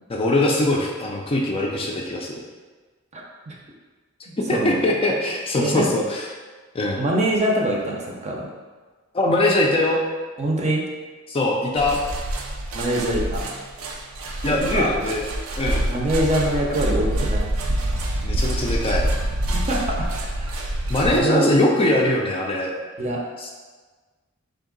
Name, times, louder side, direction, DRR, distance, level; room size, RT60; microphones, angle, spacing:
voice 1, 0.1-2.4 4.4-6.3 6.7-7.0 9.1-10.0 11.3-12.0 14.4-15.3 15.6-15.9 18.2-19.0 20.9-22.7 23.4-23.5, left 1 dB, 25° left, -1 dB, 0.4 m, -22 dB
voice 2, 3.1-3.6 4.5-4.8 5.6-5.9 7.0-8.5 10.4-10.8 12.7-13.4 14.7-14.9 15.9-17.5 19.7-20.0 20.4-20.7 21.1-21.6 23.0-23.2, right 1 dB, 35° right, -2 dB, 0.6 m, -24 dB
sound 1, 11.8-21.2, right 1 dB, 90° right, 0.5 m, -26 dB
3.5 x 2.7 x 3.8 m, 1.4 s
head